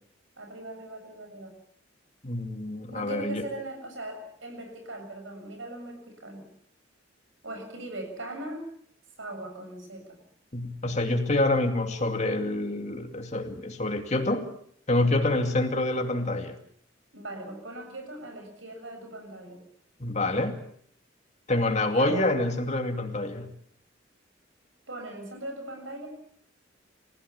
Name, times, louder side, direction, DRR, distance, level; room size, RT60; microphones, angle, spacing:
voice 1, 0.4-1.5 2.9-6.5 7.4-8.7 9.2-10.2 17.1-19.6 21.9-22.4 24.9-26.1, right 1 dB, 80° right, 4 dB, 7.4 m, -39 dB
voice 2, 2.2-3.5 10.5-14.5 14.9-16.5 20.0-20.6 21.5-23.5, left 2 dB, 35° left, 5 dB, 2.5 m, -27 dB
29.0 x 16.0 x 7.1 m, 0.64 s
head